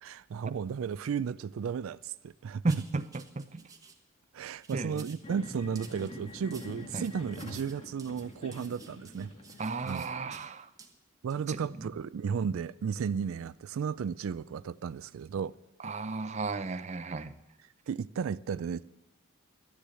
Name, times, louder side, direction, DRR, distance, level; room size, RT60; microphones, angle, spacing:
voice 1, 0.0-2.6 4.3-9.3 9.8-10.1 11.2-15.5 17.9-18.8, right 6 dB, 85° right, 0.4 m, -34 dB
voice 2, 2.6-3.7 4.7-5.1 6.9-7.0 9.6-10.7 11.5-11.9 15.8-17.4, right 3 dB, 35° right, 0.6 m, -34 dB
sound 1, 2.7-4.0 4.4-5.2 5.7-10.5 10.8-10.9 11.3-11.4, right 5 dB, 15° right, 1.2 m, -53 dB
sound 2, 5.2-10.4, left 1 dB, 30° left, 1.6 m, -46 dB
12.0 x 10.0 x 7.6 m
head